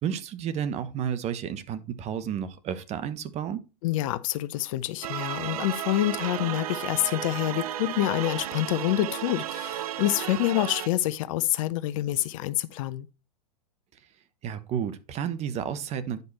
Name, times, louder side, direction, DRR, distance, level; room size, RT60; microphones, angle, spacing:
voice 1, 0.0-3.6 14.4-16.2, right 8 dB, 35° right, 1.1 m, -31 dB
voice 2, 3.8-13.1, left 15 dB, 55° left, 0.7 m, -27 dB
sound 1, 5.0-10.9, right 12 dB, 65° right, 0.6 m, -33 dB
10.0 x 5.4 x 4.1 m
hypercardioid pair, 105°, 20 cm